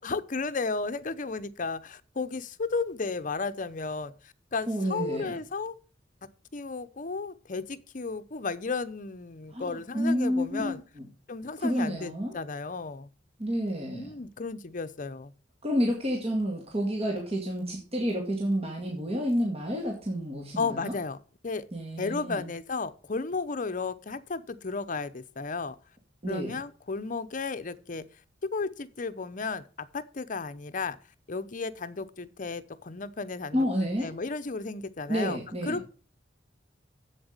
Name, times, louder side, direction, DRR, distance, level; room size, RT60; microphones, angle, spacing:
voice 1, 0.0-4.1 4.5-5.7 6.5-10.8 11.3-13.1 13.9-15.3 20.6-21.2 21.4-21.6 22.0-25.8 26.3-28.0 28.5-31.0 31.3-33.7 34.0-35.9, left 4 dB, 45° left, 0.8 m, -34 dB
voice 2, 4.7-5.3 9.5-10.7 11.6-12.4 13.4-14.1 15.6-20.9 21.7-22.5 26.2-26.6 33.5-34.1 35.1-35.8, equal, 35° right, 2.2 m, -29 dB
8.0 x 7.7 x 6.6 m
head